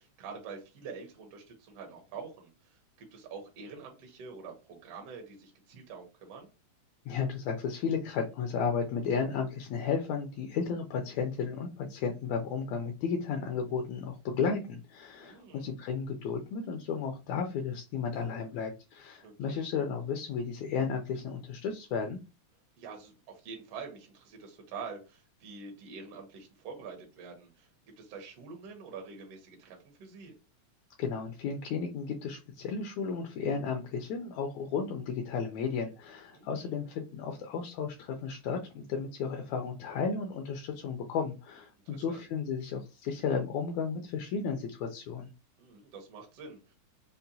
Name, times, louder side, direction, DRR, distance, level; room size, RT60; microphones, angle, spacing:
voice 1, 0.0-6.5 15.2-15.7 19.2-19.6 22.8-27.7 28.0-30.3 36.3-36.7 41.8-42.2 45.6-46.7, right 5 dB, 65° right, 1 dB, 1.7 m, -46 dB
voice 2, 7.1-22.2 31.0-45.3, left 6 dB, 80° left, 3 dB, 1.8 m, -33 dB
5.5 x 2.1 x 2.6 m, 0.29 s
omnidirectional pair, 3.5 m